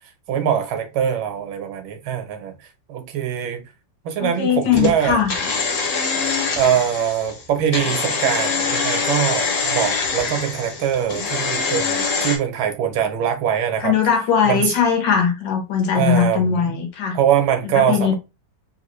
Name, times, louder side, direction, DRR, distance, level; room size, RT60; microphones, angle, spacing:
voice 1, 0.3-2.5 2.9-3.6 4.0-5.2 6.5-13.9 14.4-14.7 15.9-16.8 17.1-18.1, right 9 dB, 90° right, 1.6 m, -22 dB
voice 2, 4.2-5.3 13.8-17.2 17.7-18.1, left 7 dB, 70° left, 1.5 m, -19 dB
sound 1, 4.7-12.4, left 4 dB, 55° left, 0.9 m, -24 dB
3.7 x 2.4 x 2.9 m
omnidirectional pair, 2.1 m